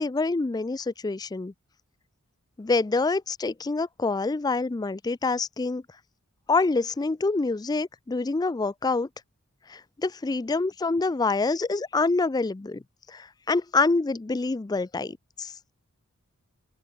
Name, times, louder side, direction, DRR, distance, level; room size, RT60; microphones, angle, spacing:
voice 1, 0.0-1.5 2.6-5.8 6.5-9.1 10.0-12.8 13.1-13.2 13.5-15.5, left 3 dB, 15° left, 0.3 m, -26 dB
open air
head